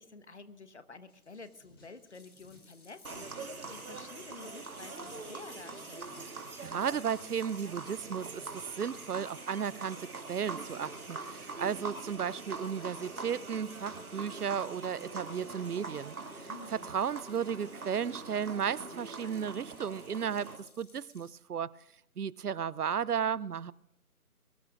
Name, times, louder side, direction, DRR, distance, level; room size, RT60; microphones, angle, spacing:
voice 1, 0.0-6.1 16.5-17.0, left 3 dB, 50° left, 11 dB, 1.2 m, -50 dB
sound 1, 1.1-10.0, left 1 dB, 15° left, 2.5 m, -62 dB
sound 2, 2.1-21.3, left 3 dB, 70° left, 4.3 m, -62 dB
sound 3, 3.0-20.6, right 3 dB, 70° right, 2.5 m, -43 dB
voice 2, 6.6-16.1 16.4-20.5 20.8-21.7 22.2-23.7, right 7 dB, 85° right, 22 dB, 0.7 m, -34 dB
23.0 x 19.0 x 2.5 m, 0.77 s
figure-of-eight pair, 170°, 44 cm